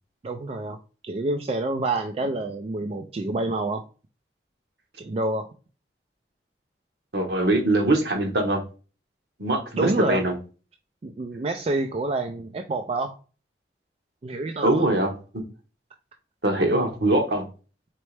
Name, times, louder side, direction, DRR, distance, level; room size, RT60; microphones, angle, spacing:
voice 1, 0.2-0.8 1.0-3.8 5.0-5.5 9.8-10.2 11.0-13.2 14.2-14.8, right 2 dB, 35° right, 5 dB, 0.3 m, -27 dB
voice 2, 7.1-8.6 9.4-10.3 14.6-15.4 16.4-17.5, right 1 dB, 65° right, 3 dB, 1.2 m, -22 dB
4.4 x 3.1 x 3.2 m, 0.35 s
head